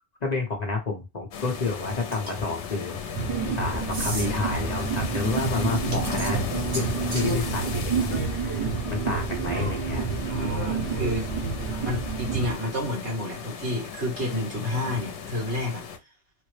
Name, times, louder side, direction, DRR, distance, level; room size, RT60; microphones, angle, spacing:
voice 1, 0.2-3.2 3.5-8.3 8.9-10.1, left 3 dB, 40° left, 0.8 m, -30 dB
sound 1, 1.3-16.0, left 6 dB, 85° left, 0.9 m, -36 dB
sound 2, 2.1-2.5 3.9-4.3 5.7-7.4, right 1 dB, 50° right, 1.4 m, -34 dB
sound 3, 3.1-12.6, right 5 dB, 30° right, 1.1 m, -29 dB
voice 2, 10.3-11.3 11.8-15.8, left 1 dB, 70° right, 1.9 m, -30 dB
3.5 x 2.1 x 3.1 m
omnidirectional pair, 1.2 m